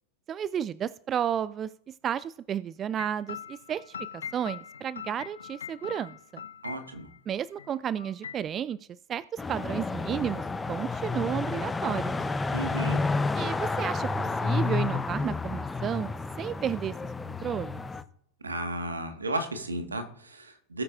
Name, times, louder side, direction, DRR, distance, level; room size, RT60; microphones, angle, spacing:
voice 1, 0.3-1.7 2.0-3.9 4.3-6.4 7.3-8.8 9.1-9.2 9.5-12.2 13.3-16.9 17.2-17.8, right 9 dB, 30° right, 19 dB, 0.3 m, -32 dB
sound 1, 3.0-7.2 7.6-7.7 8.0-8.5, left 7 dB, 75° left, 0.6 m, -42 dB
voice 2, 6.6-7.1 12.5-13.0 18.4-20.8, right 2 dB, 85° right, 6 dB, 1.5 m, -33 dB
sound 2, 9.4-18.0, left 3 dB, 15° left, 0.7 m, -30 dB
18.5 x 8.4 x 2.5 m, 0.67 s
figure-of-eight pair, 90°, 0 cm